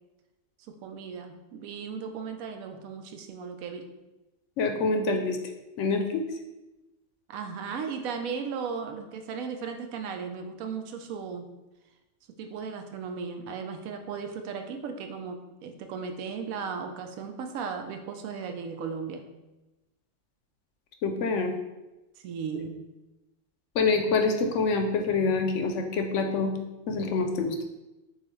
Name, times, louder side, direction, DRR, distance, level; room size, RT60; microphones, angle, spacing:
voice 1, 0.7-3.8 7.3-11.5 12.4-19.2 22.2-22.8, right 6 dB, 85° right, 5 dB, 1.0 m, -36 dB
voice 2, 4.6-5.4 5.8-6.2 21.0-21.5 23.7-26.5 26.9-27.6, left 4 dB, 70° left, 4 dB, 0.8 m, -26 dB
6.6 x 2.4 x 3.1 m, 1.0 s
omnidirectional pair, 1.4 m